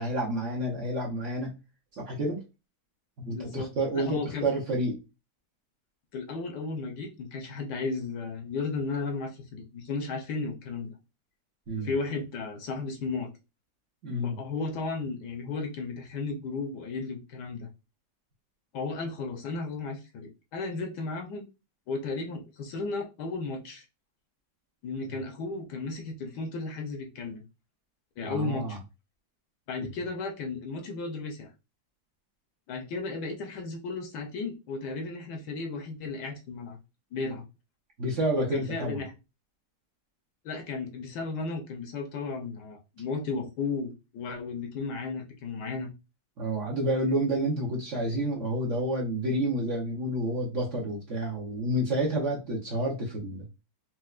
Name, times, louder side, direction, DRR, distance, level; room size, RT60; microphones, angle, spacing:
voice 1, 0.0-1.5 1.9-2.4 3.2-5.0 11.7-11.9 14.0-14.4 25.0-25.1 28.2-28.8 38.0-39.0 46.4-53.4, right 1 dB, 55° right, -3 dB, 0.9 m, -29 dB
voice 2, 3.3-4.5 6.1-10.9 11.8-13.3 14.2-17.7 18.7-21.4 21.9-23.8 24.8-27.4 28.2-28.8 29.7-31.5 32.7-36.8 37.1-37.4 38.4-39.1 40.4-45.9, left 3 dB, 75° left, 4 dB, 1.2 m, -34 dB
4.3 x 2.2 x 2.3 m, 0.28 s
omnidirectional pair, 1.9 m